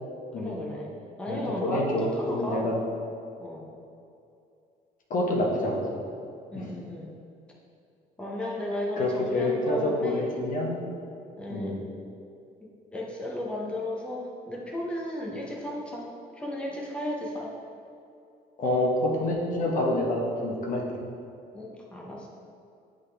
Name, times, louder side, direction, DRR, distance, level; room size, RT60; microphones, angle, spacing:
voice 1, 0.3-2.7 3.4-3.7 6.5-7.1 8.2-10.3 11.4-11.8 12.6-17.5 21.5-22.3, left 1 dB, 5° left, -3 dB, 0.8 m, -34 dB
voice 2, 1.3-2.8 5.1-5.8 9.0-10.8 11.5-11.8 18.6-20.8, left 1 dB, 50° left, -1 dB, 1.1 m, -27 dB
8.0 x 3.8 x 3.3 m, 2.6 s
cardioid pair, 110°, 17 cm